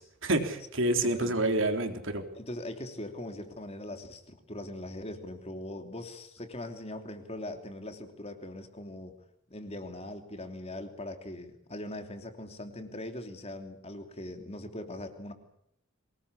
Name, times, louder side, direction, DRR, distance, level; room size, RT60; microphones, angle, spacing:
voice 1, 0.0-2.2, right 2 dB, 65° right, 5 dB, 3.7 m, -28 dB
voice 2, 1.0-1.4 2.3-9.1 9.5-15.3, left 1 dB, 30° left, 6 dB, 3.0 m, -41 dB
24.0 x 20.0 x 8.5 m, 0.72 s
head